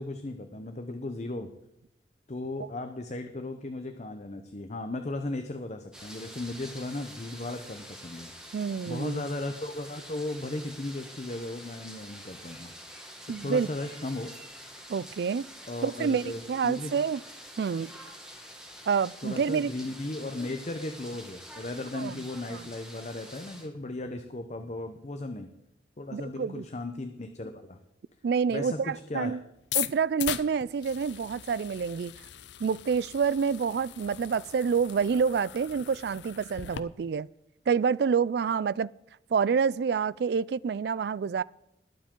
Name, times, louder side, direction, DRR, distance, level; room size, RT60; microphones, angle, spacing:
voice 1, 0.0-1.5 2.3-8.3 8.9-12.7 13.4-14.3 15.7-17.0 19.2-25.5 26.0-27.8 28.5-29.4, left 2 dB, 40° left, 0.8 m, -36 dB
sound 1, 5.9-23.7, equal, 5° right, 1.9 m, -47 dB
voice 2, 8.5-9.2 13.3-13.7 14.9-15.5 15.8-17.2 17.6-17.9 18.9-19.7 21.9-22.1 22.5-22.6 26.1-26.6 28.2-29.4 29.7-32.1 32.6-37.3 37.7-38.9 39.3-41.4, right 6 dB, 60° right, 0.3 m, -28 dB
sound 2, 29.6-36.8, left 12 dB, 75° left, 0.6 m, -38 dB
20.5 x 7.5 x 3.7 m
head